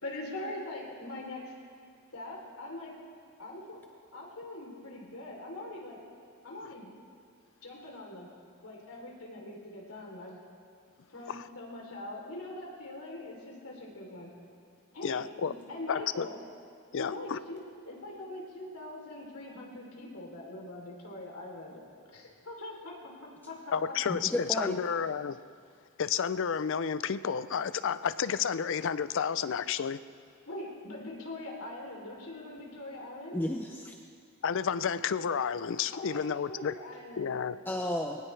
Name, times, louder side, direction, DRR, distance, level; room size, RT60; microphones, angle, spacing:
voice 1, 0.0-1.5 2.1-2.9 3.4-3.8 4.1-6.0 6.4-6.9 7.6-8.3 8.6-10.4 11.1-14.3 14.9-16.4 17.0-21.8 22.1-23.6 30.5-33.4 35.9-37.4, left 1 dB, 85° left, -2 dB, 3.4 m, -42 dB
voice 2, 15.0-15.5 15.9-16.3 16.9-17.4 23.7-25.4 26.0-30.0 34.4-36.7 37.2-37.6, left 7 dB, 60° left, 15 dB, 0.4 m, -31 dB
voice 3, 24.1-24.8 33.3-33.9 37.7-38.2, left 1 dB, 10° left, 3 dB, 0.6 m, -33 dB
21.5 x 18.5 x 3.3 m, 2.3 s
head